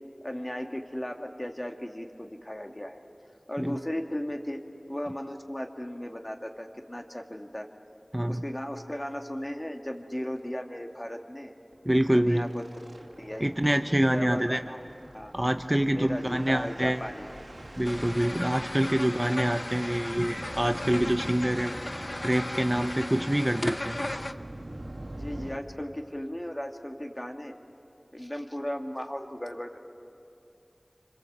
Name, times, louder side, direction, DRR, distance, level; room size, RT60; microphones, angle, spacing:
voice 1, 0.2-3.0 3.5-4.6 4.9-7.7 8.2-11.5 12.1-12.6 13.2-13.5 14.1-14.8 15.1-15.3 15.9-17.3 18.9-19.0 25.2-27.6 28.1-29.8, equal, 30° left, 4 dB, 2.1 m, -36 dB
sound 1, 8.9-9.0 9.4-9.5 9.8-9.9 10.2-10.4 11.7-25.6, right 1 dB, 80° right, 2.3 m, -45 dB
voice 2, 11.9-12.4 13.4-14.6 15.3-17.0 17.8-24.0, right 1 dB, 20° right, 7 dB, 0.8 m, -26 dB
sound 2, 17.8-24.3, left 1 dB, 45° left, 0.9 m, -36 dB
27.5 x 26.0 x 8.1 m, 2.7 s
wide cardioid pair, 45°, 0 cm